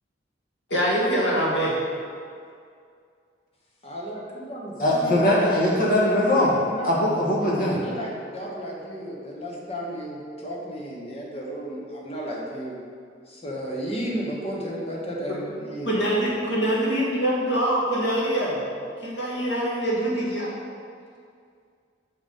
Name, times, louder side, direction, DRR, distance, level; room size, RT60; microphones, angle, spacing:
voice 1, 0.7-1.7 15.3-15.4 15.8-18.6 19.0-20.5, right 1 dB, 75° left, -5 dB, 1.9 m, -24 dB
voice 2, 3.8-5.5 6.0-6.9 7.6-12.8 13.3-15.9, equal, 35° left, -3 dB, 1.2 m, -33 dB
voice 3, 4.8-6.5 6.8-7.8, left 1 dB, 50° left, -6 dB, 1.7 m, -21 dB
5.9 x 5.5 x 5.5 m, 2.2 s
head